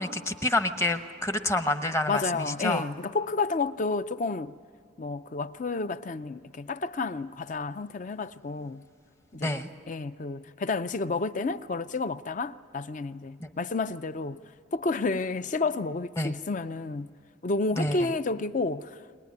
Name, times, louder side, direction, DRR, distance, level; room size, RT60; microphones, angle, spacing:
voice 1, 0.0-2.8 9.4-9.7 13.4-13.5 16.2-16.3 17.8-18.1, left 1 dB, 15° left, 0.8 m, -28 dB
voice 2, 2.1-4.5 5.0-8.8 9.3-9.5 9.9-14.4 14.7-17.1 17.4-19.0, left 3 dB, 40° left, 0.5 m, -30 dB
22.5 x 20.5 x 9.5 m
head